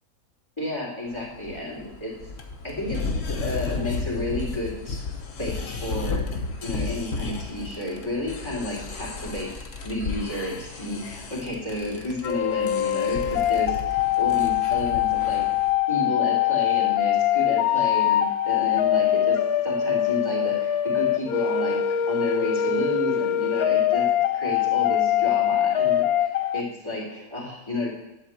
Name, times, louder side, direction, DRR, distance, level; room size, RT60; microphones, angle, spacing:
voice 1, 0.6-2.1 2.6-5.0 5.4-27.9, left 1 dB, 20° left, -6 dB, 3.2 m, -31 dB
sound 1, 1.1-15.7, left 4 dB, 60° left, 1.4 m, -34 dB
sound 2, 12.2-26.6, left 11 dB, 80° left, 1.1 m, -23 dB
11.5 x 4.1 x 7.5 m, 0.96 s
omnidirectional pair, 1.5 m